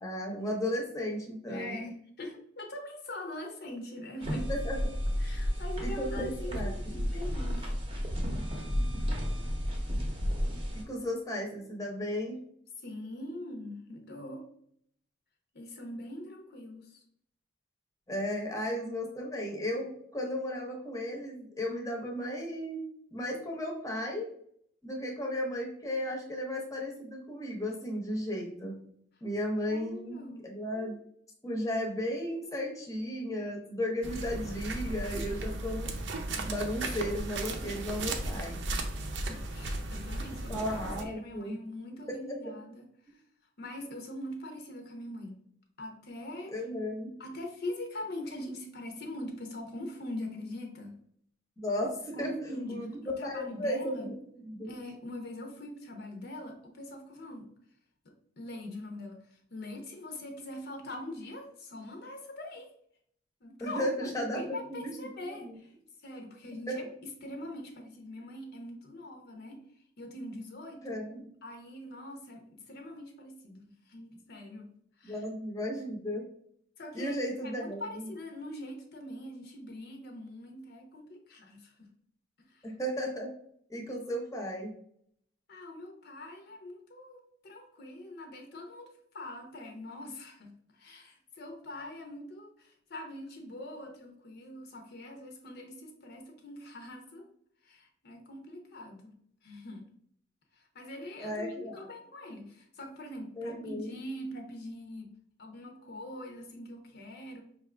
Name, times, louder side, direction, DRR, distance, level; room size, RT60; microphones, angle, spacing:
voice 1, 0.0-1.8 4.5-4.9 5.8-6.7 10.7-12.4 18.1-22.8 23.1-24.3 24.8-28.8 29.2-31.0 31.4-35.9 36.5-38.6 40.5-41.6 46.5-47.1 51.6-52.3 52.7-54.8 63.6-64.4 64.7-64.9 65.2-65.6 66.7-66.8 70.8-71.3 75.0-76.2 76.9-78.1 82.6-83.3 83.7-84.7 101.2-101.9 103.4-103.9, equal, 15° left, 0 dB, 0.8 m, -35 dB
voice 2, 1.5-4.5 5.2-7.8 12.8-14.5 15.5-17.0 29.7-30.5 36.0-36.1 36.3-36.5 39.2-43.2 43.6-45.4 45.8-46.7 47.2-51.0 52.1-54.1 54.7-57.5 58.0-62.7 63.4-63.9 64.1-65.7 66.0-66.8 67.2-70.9 71.4-74.7 75.0-75.2 76.8-77.2 77.4-81.9 82.4-82.7 85.5-97.3 97.6-99.1 99.4-99.9 100.5-105.1 105.4-107.4, left 1 dB, 55° left, 3 dB, 0.7 m, -43 dB
sound 1, 4.2-10.8, equal, 25° right, 0.8 m, -32 dB
sound 2, 34.0-41.0, right 2 dB, 65° right, 0.6 m, -36 dB
5.2 x 2.5 x 3.2 m, 0.67 s
head